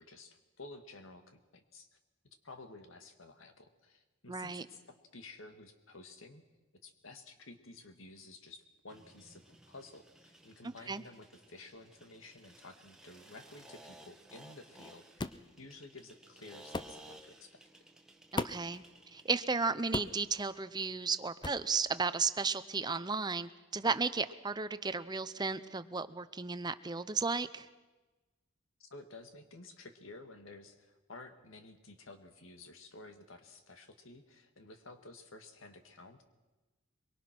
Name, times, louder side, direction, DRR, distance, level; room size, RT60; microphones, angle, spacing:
voice 1, 0.0-1.9 2.4-6.4 6.8-15.3 15.6-17.6 28.8-36.2, left 2 dB, 80° left, 7 dB, 2.1 m, -53 dB
voice 2, 4.3-4.7 10.9-11.0 18.3-18.8 19.1-27.7, right 4 dB, 20° right, 13 dB, 0.7 m, -34 dB
sound 1, 8.9-19.7, right 1 dB, 5° right, 1.5 m, -57 dB
sound 2, 15.2-15.5 16.7-17.0 18.4-18.7 19.9-20.2 21.4-21.7, left 2 dB, 20° left, 0.7 m, -36 dB
24.0 x 23.5 x 6.1 m, 1.2 s
head